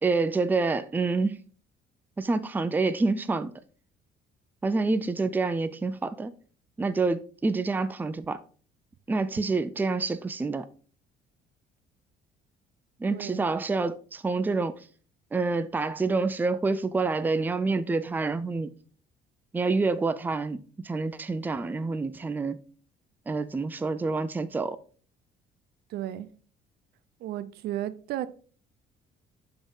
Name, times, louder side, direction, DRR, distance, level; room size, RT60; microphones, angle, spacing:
voice 1, 0.0-1.4 2.2-3.5 4.6-6.3 6.8-8.4 9.1-10.7 13.0-14.8 15.3-18.7 19.5-22.6 23.3-24.8, right 3 dB, 10° right, 0.4 m, -27 dB
voice 2, 13.1-13.5 25.9-26.3 27.2-28.3, right 13 dB, 70° right, 0.5 m, -33 dB
6.9 x 3.9 x 3.8 m
cardioid pair, 110°, 17 cm